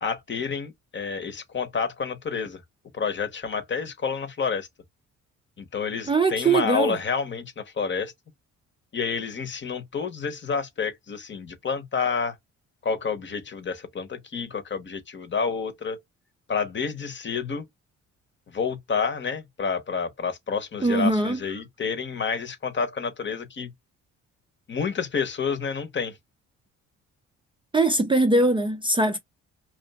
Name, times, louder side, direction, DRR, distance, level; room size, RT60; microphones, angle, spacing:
voice 1, 0.0-2.6 2.9-4.7 5.6-8.1 8.9-12.4 12.8-16.0 16.5-17.6 18.5-23.7 24.7-26.2, left 5 dB, 40° left, 0.9 m, -29 dB
voice 2, 6.1-7.0 20.8-21.4 27.7-29.2, right 2 dB, 15° right, 0.4 m, -21 dB
2.7 x 2.5 x 2.2 m
cardioid pair, 90°, 30 cm